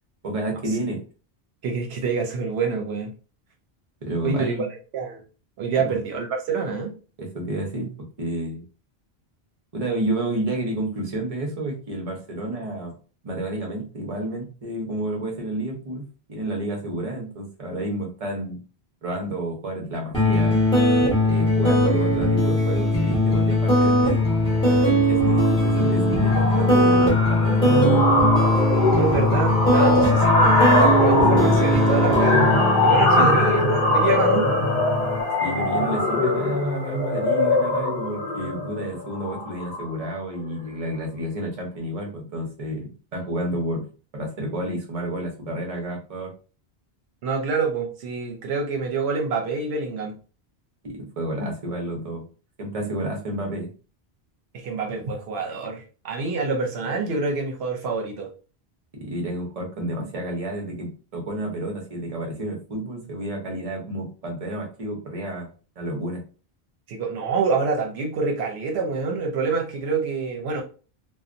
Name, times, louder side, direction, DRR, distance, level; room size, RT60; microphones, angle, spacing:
voice 1, 0.2-1.0 4.0-4.7 5.7-6.0 7.2-8.6 9.7-12.9 13.2-16.0 16.3-18.6 19.0-20.6 21.2-24.3 24.7-28.3 33.1-33.3 35.4-43.9 44.1-46.3 50.8-52.3 52.6-53.7 58.9-65.5 65.8-66.2, right 1 dB, 40° right, 1 dB, 0.8 m, -30 dB
voice 2, 1.6-3.1 4.2-4.5 4.9-5.2 5.6-6.9 29.0-32.5 32.8-34.5 47.2-50.1 54.5-58.3 66.9-70.6, right 4 dB, 75° right, 2 dB, 0.8 m, -26 dB
sound 1, 20.1-35.2, left 1 dB, 5° left, 0.9 m, -20 dB
sound 2, 24.0-24.3 24.6-24.9 25.2-40.1, left 2 dB, 50° left, 0.6 m, -22 dB
2.7 x 2.1 x 2.5 m, 0.36 s
omnidirectional pair, 1.1 m